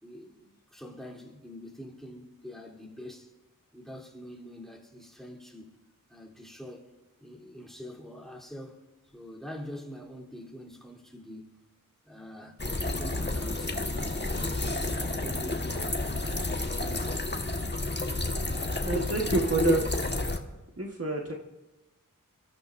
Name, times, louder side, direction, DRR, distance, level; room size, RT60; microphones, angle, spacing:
voice 1, 0.0-3.3 3.7-5.7 6.1-6.9 7.2-11.6 12.0-17.1, left 1 dB, ahead, 3.3 m, -45 dB
sound 1, 12.6-20.4, left 2 dB, 30° left, 1.4 m, -30 dB
voice 2, 18.8-20.4 20.8-21.3, right 3 dB, 45° right, 1.5 m, -30 dB
29.0 x 14.5 x 2.6 m
wide cardioid pair, 55°, 33 cm